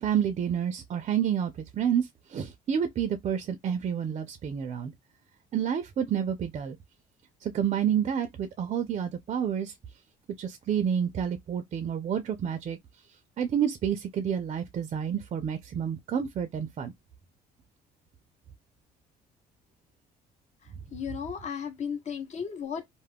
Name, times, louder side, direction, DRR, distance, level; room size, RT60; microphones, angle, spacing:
voice 1, 0.0-4.9 5.5-6.8 7.4-9.7 10.4-12.8 13.4-16.9, right 8 dB, 40° right, 0.4 m, -29 dB
voice 2, 20.9-22.9, left 7 dB, 45° left, 0.8 m, -34 dB
2.3 x 2.1 x 3.3 m
cardioid pair, 110°, 17 cm